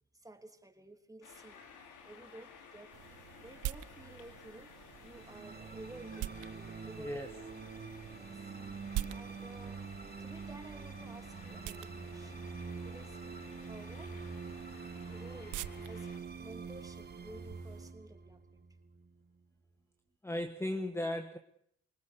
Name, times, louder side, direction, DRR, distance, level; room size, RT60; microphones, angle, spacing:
voice 1, 0.1-1.6 2.0-3.0 3.4-7.3 8.2-8.4 8.8-9.8 10.2-13.4 13.7-14.2 15.1-18.6, right 1 dB, 10° right, 5 dB, 3.1 m, -53 dB
sound 1, 1.2-16.2, left 6 dB, 85° left, 3.7 m, -56 dB
Aerosol Foley, 2.9-17.9, right 14 dB, 85° right, 0.8 m, -47 dB
sound 2, 5.1-19.4, right 5 dB, 35° right, 1.6 m, -46 dB
voice 2, 7.0-7.3 20.2-21.4, left 1 dB, 10° left, 7 dB, 1.5 m, -36 dB
25.0 x 19.0 x 6.6 m, 0.69 s
cardioid pair, 90°, 30 cm